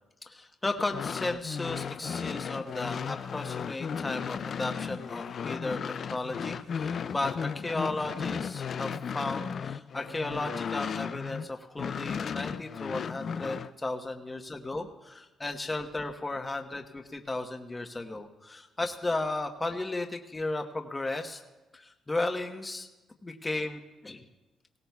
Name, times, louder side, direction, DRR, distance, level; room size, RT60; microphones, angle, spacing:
voice 1, 0.3-21.4 21.7-22.9 23.2-24.2, left 2 dB, 20° left, 4 dB, 1.1 m, -35 dB
sound 1, 0.8-11.5 11.8-13.7, left 7 dB, 55° left, 0.4 m, -35 dB
19.0 x 17.0 x 2.3 m, 1.1 s
cardioid pair, 90°, 0 cm